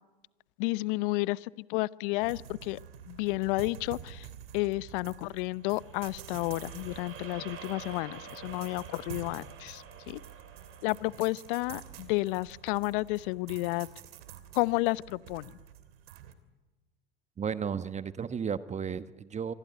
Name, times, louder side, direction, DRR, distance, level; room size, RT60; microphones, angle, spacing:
voice 1, 0.6-2.8 3.1-4.3 4.5-10.2 10.8-13.9 14.5-15.5, left 22 dB, 60° left, 20 dB, 0.8 m, -31 dB
sound 1, 2.2-16.3, right 9 dB, 70° right, 3.0 m, -48 dB
sound 2, 5.5-13.8, right 7 dB, 45° right, 7.5 m, -50 dB
voice 2, 17.4-19.5, right 7 dB, 20° right, 14 dB, 1.2 m, -34 dB
26.5 x 23.5 x 9.3 m, 1.2 s
hypercardioid pair, 90°, 31 cm